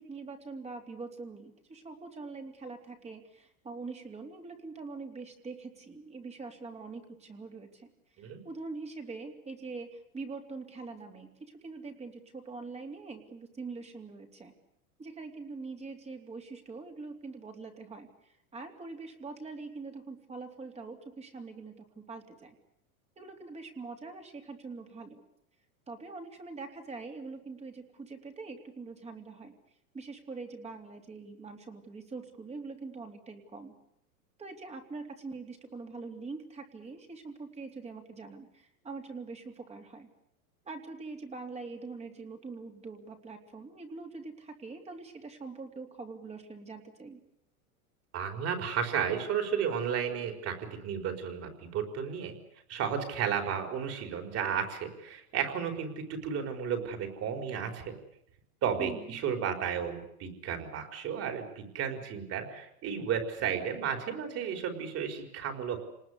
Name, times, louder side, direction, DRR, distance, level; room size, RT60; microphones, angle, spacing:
voice 1, 0.0-7.9 8.2-14.5 15.0-22.5 23.2-25.2 25.9-29.5 29.9-33.7 34.4-40.1 40.6-47.2 58.8-59.2, right 4 dB, 15° right, 4 dB, 3.2 m, -43 dB
voice 2, 48.1-52.3 52.7-57.9 58.6-65.8, right 7 dB, 35° right, 7 dB, 4.9 m, -33 dB
27.5 x 20.0 x 8.3 m, 0.75 s
supercardioid pair, 140°, 43 cm